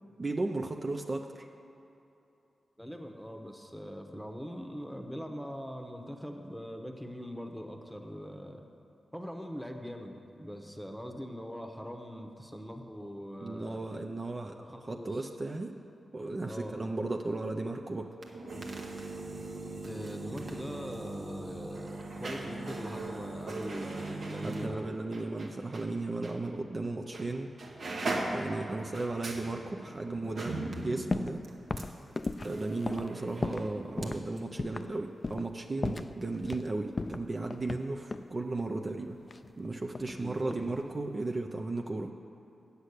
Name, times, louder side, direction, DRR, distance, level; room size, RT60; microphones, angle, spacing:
voice 1, 0.2-1.3 13.4-14.6 14.9-15.7 16.1-18.1 24.4-27.5 28.3-31.4 32.4-39.2 39.6-42.1, right 2 dB, 40° right, 2 dB, 0.5 m, -35 dB
voice 2, 2.8-8.6 9.1-13.8 14.6-15.3 16.4-16.8 19.8-24.9 40.2-40.6, equal, ahead, 4 dB, 1.0 m, -42 dB
sound 1, 18.1-25.9 26.2-26.4 27.1-27.3 27.6-34.1 34.4-34.5, right 2 dB, 70° right, 1.1 m, -39 dB
sound 2, 31.1-31.4 31.7-33.7 34.0-34.2 34.6-34.9 35.2-35.5 35.8-36.7 37.0-38.3 39.3-40.2 40.5-40.9, left 3 dB, 40° left, 0.3 m, -36 dB
8.2 x 6.5 x 8.2 m, 2.9 s
cardioid pair, 65°, 0 cm